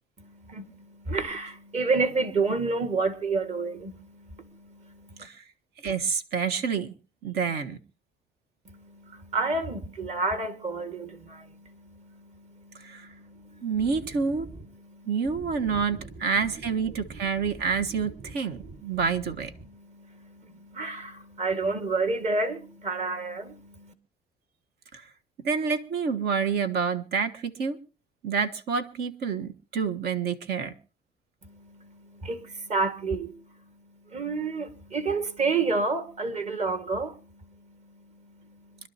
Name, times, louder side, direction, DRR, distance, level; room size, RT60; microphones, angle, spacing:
voice 1, 0.2-5.3 8.7-13.7 14.9-15.1 15.7-15.8 16.9-17.0 18.5-18.8 19.8-23.9 31.4-33.3 34.1-37.2, right 3 dB, 45° right, 2.0 m, -30 dB
voice 2, 5.8-6.9 7.2-7.8 12.8-13.1 13.6-14.5 15.0-19.5 24.9-25.1 25.4-27.8 28.2-30.7, right 5 dB, 70° right, 1.4 m, -28 dB
25.5 x 12.0 x 2.9 m
cardioid pair, 110°, 17 cm